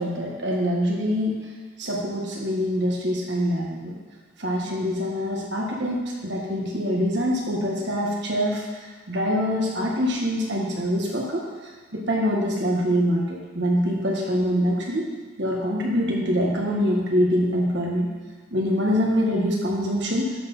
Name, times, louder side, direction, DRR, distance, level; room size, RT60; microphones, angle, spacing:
voice 1, 0.0-1.4 1.8-4.0 4.4-8.7 9.1-11.4 11.9-15.0 15.4-18.1 18.5-20.3, equal, 70° right, -2 dB, 1.7 m, -24 dB
11.5 x 4.3 x 5.6 m, 1.4 s
head